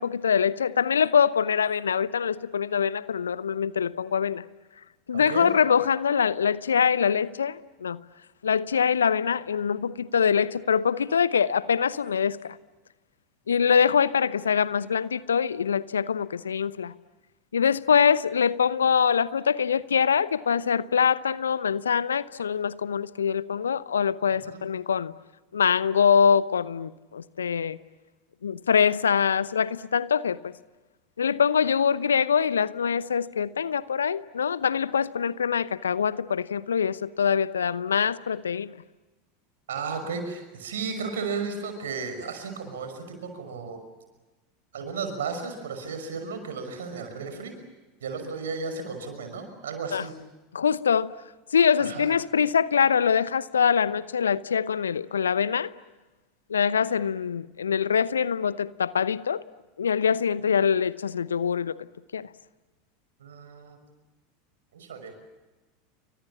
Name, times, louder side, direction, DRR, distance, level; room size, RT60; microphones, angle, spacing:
voice 1, 0.0-4.4 5.1-8.0 8.4-12.6 13.5-16.9 17.5-25.1 25.5-27.8 28.4-30.5 31.2-38.8 49.9-50.0 50.5-51.1 51.5-55.7 56.5-59.4 59.8-61.9 62.1-62.3, left 7 dB, 75° left, 0.8 m, -24 dB
voice 2, 5.1-5.5 24.4-24.6 39.7-43.8 44.7-47.6 48.0-50.1 51.8-52.1 63.2-63.8 64.7-65.1, right 5 dB, 70° right, 5.8 m, -34 dB
29.5 x 25.0 x 7.3 m
figure-of-eight pair, 80°, 0 cm